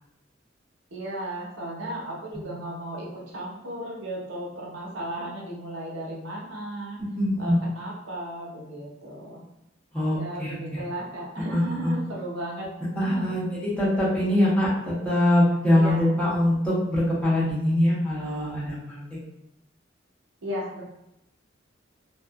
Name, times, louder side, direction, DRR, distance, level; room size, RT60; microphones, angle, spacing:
voice 1, 0.9-7.0 7.4-9.4 10.1-12.7 13.0-13.3 15.7-16.1 20.4-20.8, right 1 dB, 85° right, -4 dB, 0.9 m, -35 dB
voice 2, 7.2-7.6 9.9-10.6 11.5-11.9 13.0-19.0, left 1 dB, 5° left, -10 dB, 1.1 m, -23 dB
2.8 x 2.4 x 2.3 m, 0.86 s
head